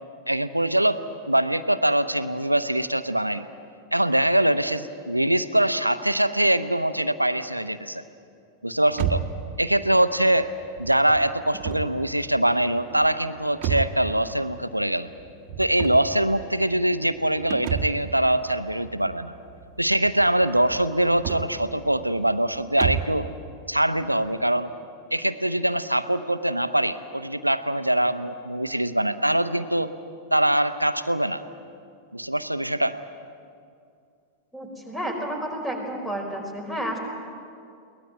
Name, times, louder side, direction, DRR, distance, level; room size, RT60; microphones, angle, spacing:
voice 1, 0.3-1.0 1.3-3.4 3.9-8.0 8.6-9.2 9.6-10.5 10.8-15.1 15.6-19.3 19.8-23.3 23.7-24.7 25.1-29.9 30.3-31.4 32.1-33.0, right 1 dB, 85° right, 12 dB, 0.8 m, -23 dB
sound 1, 8.9-23.3, right 9 dB, 40° right, 1.5 m, -34 dB
voice 2, 34.5-37.0, right 1 dB, 10° left, 3 dB, 4.7 m, -31 dB
22.5 x 18.5 x 9.1 m, 2.4 s
figure-of-eight pair, 90°, 0 cm